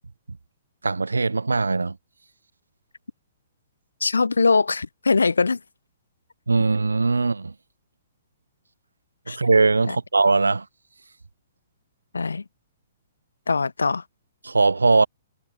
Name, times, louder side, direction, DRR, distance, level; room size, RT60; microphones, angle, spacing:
voice 1, 0.8-2.0 6.5-7.5 9.3-10.7 14.4-15.1, right 3 dB, 75° right, 0.6 m, -20 dB
voice 2, 4.0-5.6 9.3-9.4 9.9-10.0 12.1-12.4 13.5-14.0, left 4 dB, 70° left, 1.1 m, -21 dB
figure-of-eight pair, 115°, 0 cm